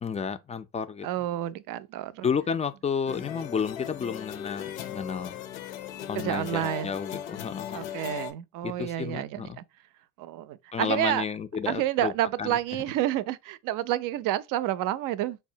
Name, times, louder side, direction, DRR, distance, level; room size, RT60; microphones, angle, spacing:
voice 1, 0.0-1.1 2.2-5.4 6.1-7.9 8.6-9.6 10.7-12.1 12.4-12.6, left 6 dB, 20° left, 0.3 m, -31 dB
voice 2, 1.0-2.3 6.2-6.9 7.7-9.6 10.2-11.2 11.7-15.4, right 13 dB, 55° right, 0.5 m, -29 dB
sound 1, 3.1-8.3, left 10 dB, 90° left, 0.6 m, -38 dB
4.6 x 2.1 x 2.7 m
hypercardioid pair, 65°, 39 cm